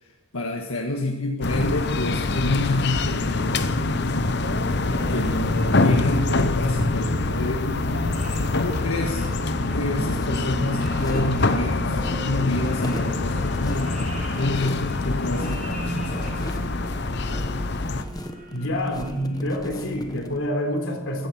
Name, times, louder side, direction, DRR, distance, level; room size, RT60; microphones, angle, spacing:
voice 1, 0.0-3.8 5.1-7.9 8.5-9.3 9.7-14.0 14.3-16.4, left 2 dB, 90° left, 1 dB, 1.6 m, -28 dB
sound 1, 1.4-18.0, left 2 dB, 50° left, 0.9 m, -25 dB
sound 2, 1.9-19.8, equal, 40° right, 2.7 m, -35 dB
sound 3, 7.3-20.4, equal, 20° left, 1.1 m, -39 dB
voice 2, 18.5-21.3, left 1 dB, 70° left, 3 dB, 3.7 m, -27 dB
15.5 x 14.0 x 6.1 m, 1.0 s
head